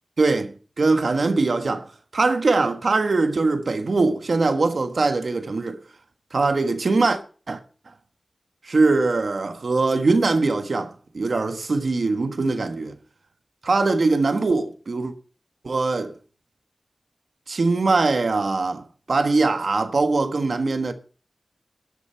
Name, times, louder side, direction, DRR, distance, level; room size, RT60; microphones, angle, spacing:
voice 1, 0.2-1.9 2.1-5.8 6.3-7.2 7.5-7.6 8.6-12.9 13.6-15.1 15.6-16.1 17.5-20.9, right 3 dB, 75° right, 1.4 m, -22 dB
12.5 x 8.2 x 5.7 m
wide cardioid pair, 80°, 0 cm